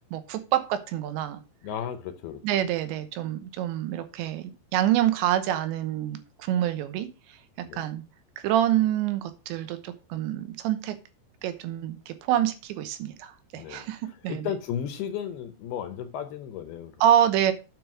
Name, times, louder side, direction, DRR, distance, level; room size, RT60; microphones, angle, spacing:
voice 1, 0.1-1.4 2.4-7.1 7.7-8.0 8.4-11.0 11.4-14.5 17.0-17.5, right 11 dB, 85° right, 3.3 m, -26 dB
voice 2, 1.6-2.4 7.7-7.9 13.5-13.9 14.3-16.9, left 9 dB, 75° left, 2.6 m, -34 dB
9.5 x 5.0 x 6.2 m
omnidirectional pair, 5.1 m